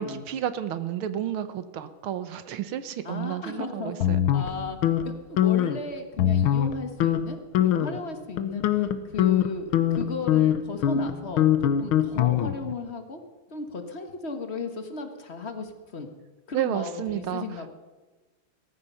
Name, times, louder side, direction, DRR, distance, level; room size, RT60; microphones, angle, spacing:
voice 1, 0.0-4.2 16.5-17.7, right 10 dB, 75° right, 12 dB, 1.8 m, -31 dB
voice 2, 3.0-4.8 5.0-13.2 13.5-16.1 16.5-17.7, left 4 dB, 30° left, 6 dB, 1.6 m, -35 dB
sound 1, 4.0-5.0 5.4-5.8 6.2-6.7 7.0-7.2 7.5-8.0 8.4-12.7, left 11 dB, 75° left, 1.7 m, -23 dB
17.0 x 14.5 x 5.6 m, 1.2 s
omnidirectional pair, 2.4 m